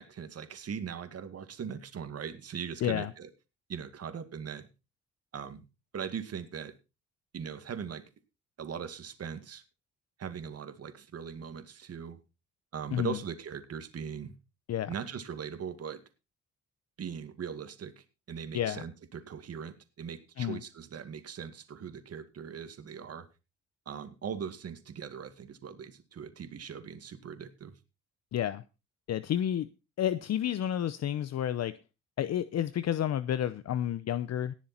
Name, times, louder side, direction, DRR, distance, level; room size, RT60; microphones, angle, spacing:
voice 1, 0.0-3.3 3.7-4.7 5.3-5.6 5.9-6.7 7.3-8.0 8.6-9.6 10.2-12.2 12.7-14.3 14.9-16.0 17.0-23.3 23.9-27.7, right 7 dB, 55° right, 9 dB, 2.2 m, -40 dB
voice 2, 2.8-3.1 12.9-13.2 14.7-14.9 18.5-18.8 20.4-20.6 28.3-28.6 29.1-29.7 30.0-31.8 32.2-34.5, left 10 dB, 60° left, 15 dB, 0.8 m, -30 dB
18.5 x 7.3 x 4.4 m, 0.29 s
cardioid pair, 90°, 30 cm